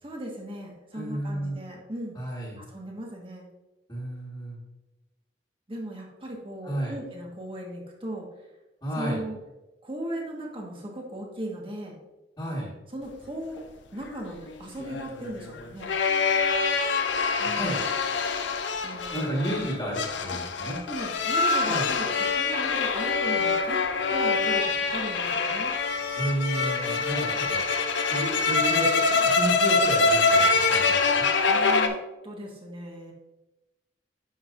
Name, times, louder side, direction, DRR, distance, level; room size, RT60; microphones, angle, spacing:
voice 1, 0.0-2.2 2.6-3.5 5.7-8.3 9.0-9.4 9.8-12.0 12.9-13.6 13.9-15.9 17.4-17.7 18.8-19.3 20.3-20.4 20.8-22.1 22.3-23.8 24.1-25.7 31.5-31.9 32.2-33.1, right 1 dB, 30° right, -1 dB, 1.6 m, -37 dB
voice 2, 0.9-1.6 2.2-2.6 3.9-4.6 6.6-6.9 8.8-9.2 12.4-12.7 17.4-17.8 19.1-20.8 21.6-21.9 26.2-27.6 28.1-31.3, right 1 dB, 20° left, -9 dB, 1.8 m, -32 dB
sound 1, 14.1-31.9, left 4 dB, 85° left, 0.7 m, -25 dB
10.5 x 5.6 x 2.6 m, 1.0 s
head